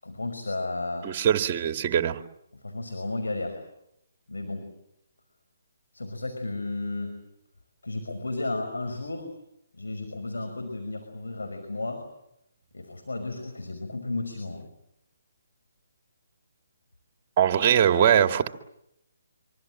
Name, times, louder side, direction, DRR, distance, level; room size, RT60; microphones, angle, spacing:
voice 1, 0.0-1.1 2.5-3.6 4.3-4.7 5.9-7.2 7.8-9.3 9.7-12.1 12.7-14.7, left 2 dB, 85° left, 4 dB, 5.7 m, -33 dB
voice 2, 1.0-2.2 17.4-18.5, right 9 dB, 35° right, 7 dB, 2.2 m, -21 dB
26.0 x 24.5 x 7.7 m, 0.79 s
figure-of-eight pair, 145°, 0 cm